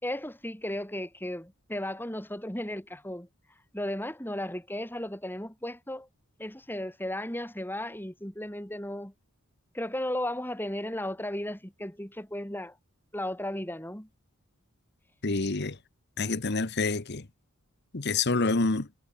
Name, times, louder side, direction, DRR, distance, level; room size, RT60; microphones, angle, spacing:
voice 1, 0.0-3.3 3.7-6.1 6.4-9.1 9.7-12.8 13.1-14.1, left 1 dB, 10° left, 4.3 m, -35 dB
voice 2, 15.2-15.8 16.2-17.3 17.9-18.9, left 3 dB, 50° left, 1.1 m, -27 dB
head